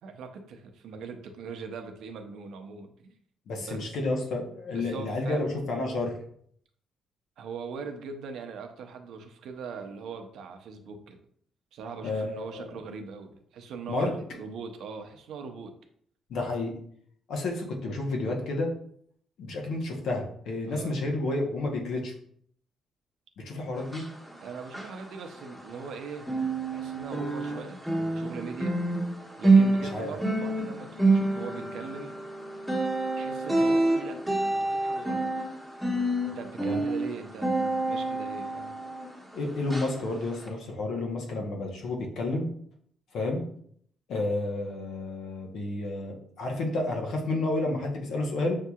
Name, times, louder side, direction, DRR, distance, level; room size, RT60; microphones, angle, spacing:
voice 1, 0.0-3.1 3.6-4.0 4.7-5.6 7.4-11.2 11.7-15.7 20.7-21.0 24.4-26.3 26.7-28.8 29.4-32.2 33.1-34.2 34.5-35.2 36.2-38.8, right 5 dB, 80° right, 6 dB, 0.6 m, -41 dB
voice 2, 3.5-6.2 12.0-12.7 13.9-14.1 16.3-16.7 17.3-18.7 19.4-22.1 23.4-24.0 29.9-30.1 36.6-36.9 39.3-42.5 43.1-43.4 44.1-48.6, left 2 dB, 75° left, 1 dB, 1.0 m, -30 dB
sound 1, 23.8-25.9 26.2-39.3 39.7-39.9 40.4-40.5, right 2 dB, ahead, 1.3 m, -27 dB
6.5 x 2.8 x 2.4 m, 0.64 s
cardioid pair, 90°, 0 cm